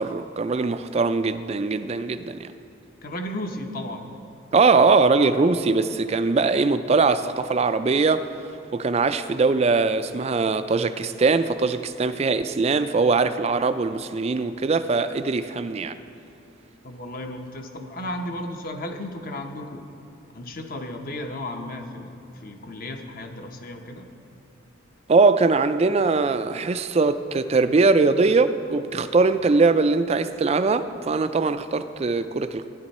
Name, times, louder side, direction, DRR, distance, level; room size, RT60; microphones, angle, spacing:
voice 1, 0.0-2.5 4.5-8.3 8.7-16.0 25.1-32.7, right 4 dB, 30° right, 11 dB, 0.3 m, -21 dB
voice 2, 3.0-4.1 16.8-19.8 20.3-24.1, left 1 dB, 45° left, 5 dB, 0.9 m, -34 dB
15.0 x 10.5 x 4.2 m, 2.6 s
head